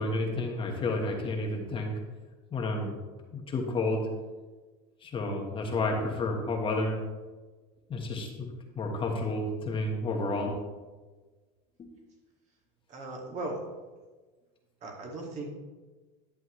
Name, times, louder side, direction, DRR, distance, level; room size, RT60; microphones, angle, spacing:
voice 1, 0.0-1.9 2.5-2.9 3.3-4.0 5.0-7.0 7.9-10.6 11.8-11.9, left 2 dB, 30° left, 1 dB, 1.4 m, -31 dB
voice 2, 12.9-13.6 14.8-15.5, right 2 dB, 40° right, 0 dB, 2.2 m, -37 dB
11.0 x 7.6 x 3.2 m, 1.3 s
supercardioid pair, 130°, 18 cm